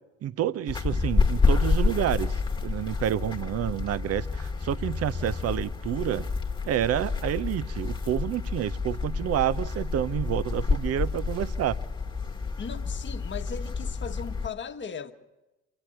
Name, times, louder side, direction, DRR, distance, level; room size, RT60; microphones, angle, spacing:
voice 1, 0.2-2.4 2.6-6.3 6.7-11.8, right 11 dB, 45° right, 0.7 m, -29 dB
Pombas caminho terra, 0.7-14.5, left 4 dB, 15° left, 1.5 m, -29 dB
voice 2, 12.6-15.1, left 6 dB, 30° left, 1.3 m, -37 dB
26.5 x 9.8 x 10.0 m
hypercardioid pair, 60°, 35 cm